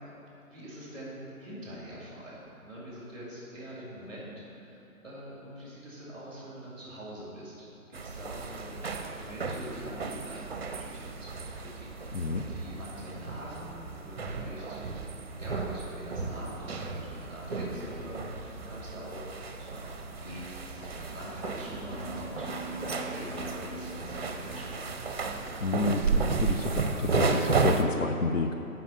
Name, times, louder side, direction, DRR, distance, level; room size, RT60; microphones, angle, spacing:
voice 1, 0.5-8.7 9.1-15.1 15.4-25.2, equal, ahead, -6 dB, 2.2 m, -44 dB
sound 1, 7.9-27.8, right 4 dB, 45° right, 0.7 m, -33 dB
voice 2, 12.1-12.5 25.6-28.5, left 3 dB, 60° left, 5 dB, 0.6 m, -30 dB
sound 2, 20.8-25.5, right 1 dB, 25° left, 0.8 m, -44 dB
7.4 x 5.6 x 7.0 m, 2.9 s
hypercardioid pair, 160°, 44 cm